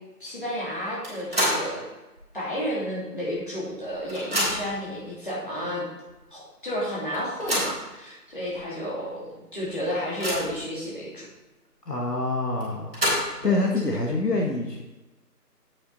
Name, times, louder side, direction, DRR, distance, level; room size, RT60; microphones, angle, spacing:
voice 1, 0.2-1.8 2.3-5.8 6.3-11.3 13.4-13.6, equal, 30° left, -8 dB, 3.1 m, -32 dB
sound 1, 1.0-1.8 2.2-2.3 3.3-3.4 3.7-4.8 5.6-5.7 6.1-6.2 7.1-7.8 8.5-8.6 9.0-9.1 9.6-10.7 12.6-13.5, equal, 35° right, 3.5 m, -28 dB
voice 2, 11.9-12.9 13.4-14.8, left 2 dB, 70° left, 0 dB, 1.7 m, -26 dB
8.5 x 7.9 x 4.2 m, 1.1 s
figure-of-eight pair, 180°, 49 cm